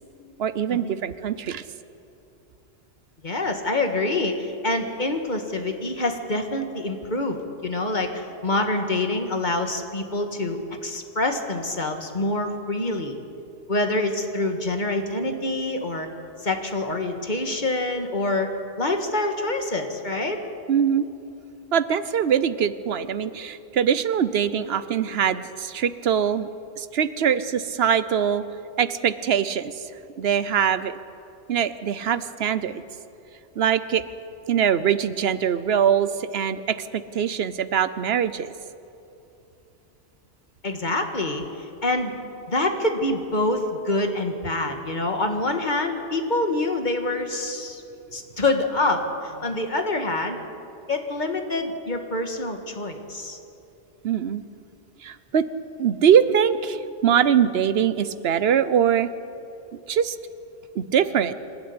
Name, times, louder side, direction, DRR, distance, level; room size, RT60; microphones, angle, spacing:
voice 1, 0.4-1.6 20.7-21.1 21.7-26.5 26.8-28.4 28.8-29.7 30.2-31.0 31.5-32.8 33.6-34.0 34.5-38.5 54.0-54.4 55.0-55.4 55.8-59.1 59.9-60.2 60.7-61.3, right 8 dB, 60° right, 14 dB, 1.0 m, -22 dB
voice 2, 3.2-13.2 13.7-16.1 16.4-18.5 18.8-20.4 40.6-41.4 41.8-42.1 42.5-47.8 48.1-50.4 50.9-53.4, left 2 dB, 40° left, 5 dB, 1.9 m, -26 dB
26.0 x 12.5 x 9.6 m, 2.7 s
omnidirectional pair, 1.2 m